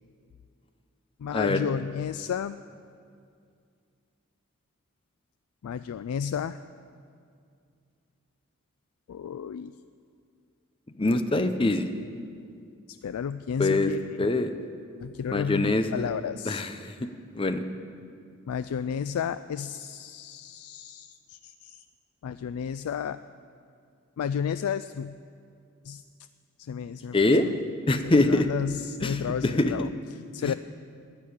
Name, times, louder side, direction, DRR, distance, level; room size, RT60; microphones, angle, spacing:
voice 1, 1.2-2.6 5.6-6.6 9.1-9.7 12.9-14.3 15.0-16.6 18.5-21.9 22.2-23.2 24.2-25.2 25.8-26.0 26.6-27.6 28.0-30.5, left 7 dB, 85° left, 13 dB, 0.3 m, -32 dB
voice 2, 11.0-11.9 13.6-13.9 14.2-14.5 15.3-16.1 16.5-17.1 17.3-17.6 27.1-27.5 27.9-28.5 29.0-29.9 30.4-30.5, left 2 dB, 25° left, 8 dB, 0.6 m, -24 dB
11.0 x 9.7 x 8.7 m, 2.3 s
head